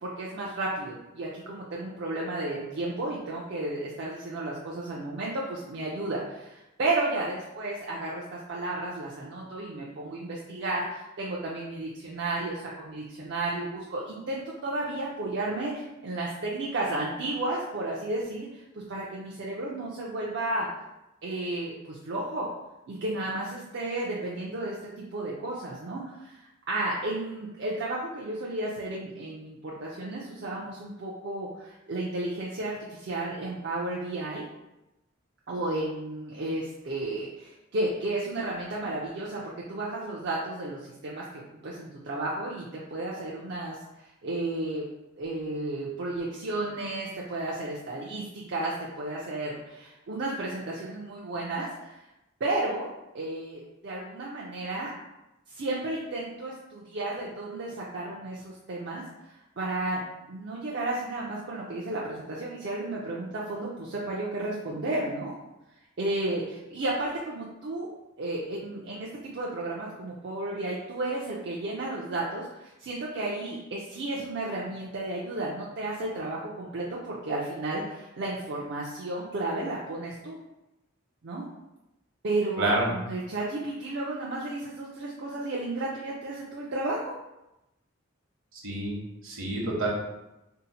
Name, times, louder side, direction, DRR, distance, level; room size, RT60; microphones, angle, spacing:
voice 1, 0.0-20.7 21.2-22.5 22.9-34.5 35.5-44.8 45.2-52.0 52.4-52.9 53.1-54.9 55.5-65.4 66.0-67.9 68.2-80.4 81.2-81.5 82.2-87.1, right 2 dB, 55° right, -5 dB, 0.4 m, -33 dB
voice 2, 82.6-82.9 88.6-88.9 89.2-89.9, right 2 dB, 70° right, -3 dB, 0.9 m, -27 dB
2.7 x 2.1 x 3.9 m, 0.95 s
head